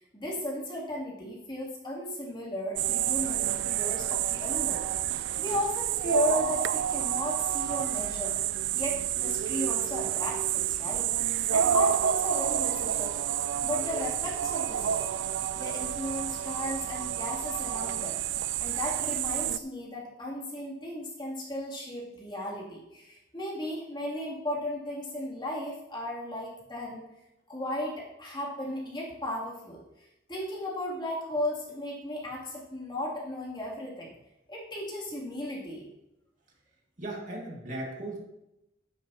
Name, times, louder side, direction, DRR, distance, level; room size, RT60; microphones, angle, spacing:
voice 1, 0.1-4.9 5.4-8.3 8.7-11.1 11.5-13.1 13.6-15.1 15.6-18.2 18.6-27.0 27.5-34.1 34.5-35.9, left 1 dB, 25° left, -5 dB, 2.7 m, -35 dB
sound 1, 2.8-19.6, right 10 dB, 85° right, 0.4 m, -29 dB
voice 2, 37.0-38.2, right 1 dB, 45° right, -2 dB, 2.1 m, -37 dB
12.0 x 10.5 x 2.9 m, 0.91 s
head